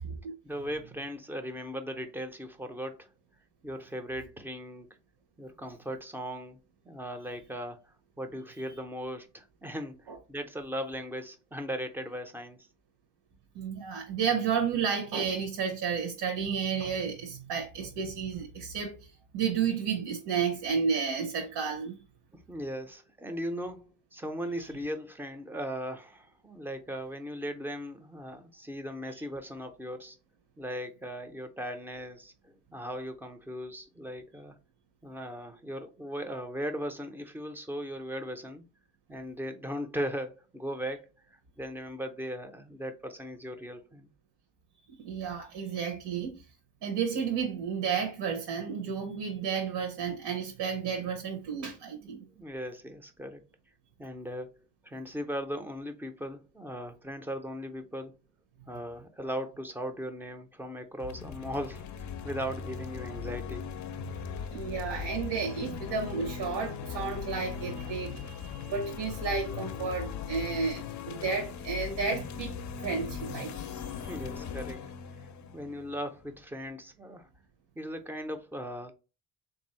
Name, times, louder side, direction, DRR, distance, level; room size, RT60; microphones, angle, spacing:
voice 1, 0.4-3.1 3.6-4.9 5.4-6.6 6.8-12.6 22.3-30.2 30.6-34.6 35.0-38.7 39.1-41.1 41.6-44.1 52.0-52.1 52.3-53.4 54.0-54.5 54.8-58.2 58.7-63.6 74.0-74.8 75.5-77.3 77.8-78.9, equal, 5° right, 0.5 m, -38 dB
voice 2, 13.5-22.0 45.0-46.4 46.8-52.3 64.5-74.1, right 6 dB, 70° right, 1.0 m, -32 dB
sound 1, 61.0-76.4, left 7 dB, 45° left, 0.5 m, -39 dB
3.5 x 2.7 x 4.3 m
cardioid pair, 120°, 41 cm